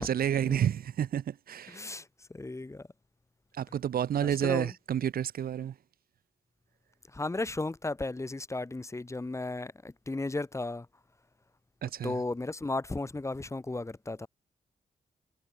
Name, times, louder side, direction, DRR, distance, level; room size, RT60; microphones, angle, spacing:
voice 1, 0.0-1.8 3.6-5.7 11.8-12.1, right 9 dB, 85° right, 1.9 m, -30 dB
voice 2, 1.7-2.9 4.2-4.7 7.1-10.9 12.0-14.3, left 2 dB, 20° left, 1.6 m, -35 dB
cardioid pair, 105°, 15 cm